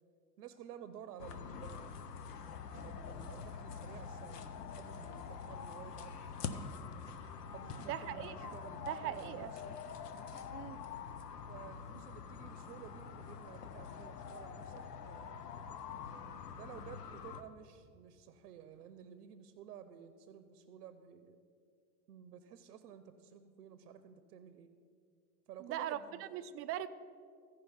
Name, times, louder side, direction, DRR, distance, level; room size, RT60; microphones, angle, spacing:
voice 1, 0.4-1.9 2.7-6.2 7.5-9.8 11.5-15.8 16.1-21.4 22.1-24.7 25.5-26.4, right 9 dB, 75° right, 11 dB, 0.7 m, -53 dB
sound 1, 1.2-17.4, left 6 dB, 90° left, 0.8 m, -46 dB
voice 2, 7.9-8.6 8.9-9.5 10.5-10.8 25.6-26.0 26.3-26.9, right 12 dB, 30° right, 13 dB, 0.4 m, -40 dB
15.0 x 5.1 x 5.7 m, 2.3 s
hypercardioid pair, 95°, 46 cm